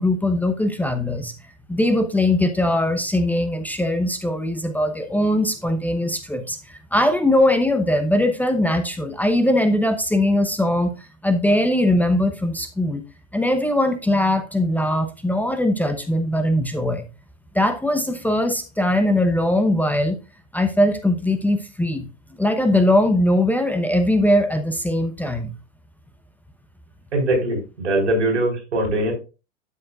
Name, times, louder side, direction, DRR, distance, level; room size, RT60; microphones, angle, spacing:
voice 1, 0.0-1.3 1.7-13.0 13.3-17.0 17.5-20.2 20.5-22.1 22.4-25.5, left 1 dB, 5° left, 8 dB, 0.8 m, -20 dB
voice 2, 27.1-29.1, right 1 dB, 80° right, 2 dB, 4.4 m, -21 dB
12.0 x 6.5 x 2.4 m, 0.30 s
hypercardioid pair, 100°, 34 cm